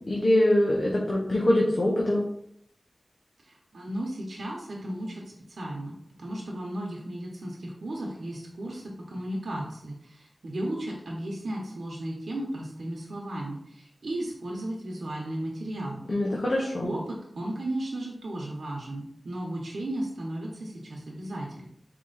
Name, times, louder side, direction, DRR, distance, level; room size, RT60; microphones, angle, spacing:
voice 1, 0.1-2.2 16.1-16.9, left 1 dB, 60° left, -3 dB, 0.9 m, -23 dB
voice 2, 3.4-16.1 16.8-21.7, right 1 dB, 80° right, -2 dB, 0.9 m, -35 dB
4.4 x 3.0 x 3.9 m, 0.71 s
cardioid pair, 40°, 0 cm